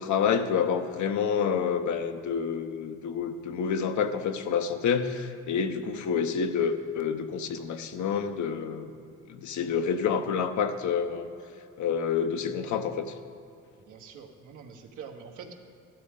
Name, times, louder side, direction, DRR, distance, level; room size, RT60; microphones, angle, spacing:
voice 1, 0.0-8.9 9.3-11.3 11.8-13.1, left 6 dB, 70° left, 7 dB, 0.9 m, -28 dB
voice 2, 13.8-15.5, right 6 dB, 80° right, 3 dB, 1.3 m, -45 dB
14.0 x 12.0 x 3.8 m, 2.6 s
cardioid pair, 90°, 30 cm